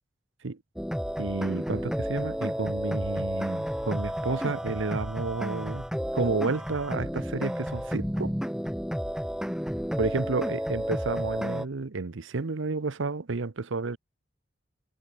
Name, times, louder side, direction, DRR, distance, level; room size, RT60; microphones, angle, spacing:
sound 1, 0.8-11.7, equal, 5° right, 1.6 m, -31 dB
voice 1, 1.2-5.8 6.1-8.3 10.0-14.0, right 3 dB, 80° right, 0.8 m, -31 dB
head